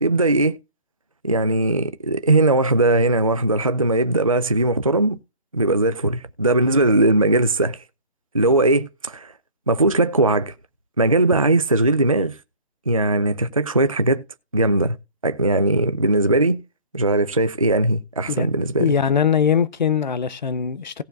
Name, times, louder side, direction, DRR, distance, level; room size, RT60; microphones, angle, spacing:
voice 1, 0.0-0.6 1.2-5.2 5.5-7.8 8.3-9.3 9.7-10.5 11.0-12.4 12.9-14.2 14.5-15.0 15.2-16.6 16.9-18.9, right 2 dB, 35° right, 0.4 m, -19 dB
voice 2, 18.8-21.0, left 7 dB, 45° left, 0.7 m, -21 dB
17.5 x 6.8 x 2.4 m
hypercardioid pair, 180°, 32 cm